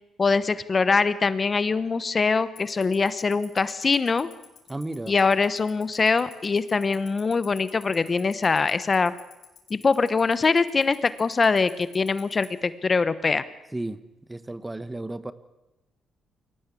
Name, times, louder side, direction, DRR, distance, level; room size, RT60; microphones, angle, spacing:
voice 1, 0.2-4.3 5.1-9.1 9.7-13.4, left 4 dB, 35° left, 15 dB, 1.0 m, -23 dB
Tick-tock, 2.6-12.4, left 9 dB, 70° left, 4.8 m, -46 dB
voice 2, 4.7-5.1 13.7-14.0 14.3-15.3, right 2 dB, 15° right, 14 dB, 1.1 m, -33 dB
22.5 x 17.5 x 8.4 m, 1.0 s
cardioid pair, 90°, 0 cm